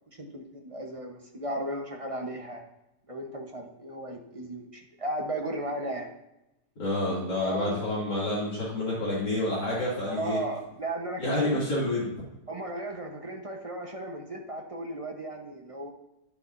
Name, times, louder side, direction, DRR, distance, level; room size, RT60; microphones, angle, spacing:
voice 1, 0.1-2.6 3.1-6.1 7.4-7.7 10.1-11.6 12.5-15.9, right 1 dB, 25° right, 1 dB, 0.9 m, -35 dB
voice 2, 6.8-10.4 11.2-12.1, left 1 dB, 80° left, -10 dB, 3.4 m, -28 dB
12.0 x 6.5 x 2.7 m, 0.92 s
omnidirectional pair, 1.8 m